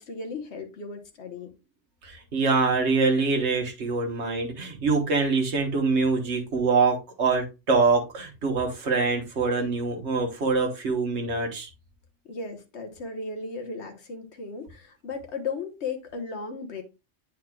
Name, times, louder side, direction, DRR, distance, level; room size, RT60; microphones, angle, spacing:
voice 1, 0.0-1.5 12.2-16.8, left 4 dB, 65° left, 1.4 m, -36 dB
voice 2, 2.0-11.7, right 4 dB, 65° right, 1.6 m, -24 dB
9.1 x 4.6 x 2.3 m
omnidirectional pair, 1.2 m